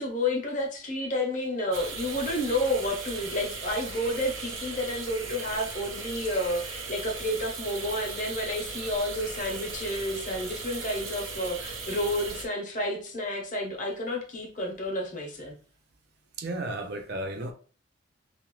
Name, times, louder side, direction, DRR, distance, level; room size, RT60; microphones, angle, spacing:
voice 1, 0.0-15.6, left 1 dB, 40° left, 0.8 m, -30 dB
sound 1, 1.7-12.5, right 4 dB, 85° right, 0.7 m, -38 dB
voice 2, 16.4-17.5, right 1 dB, 50° right, 0.5 m, -33 dB
2.8 x 2.5 x 3.0 m
head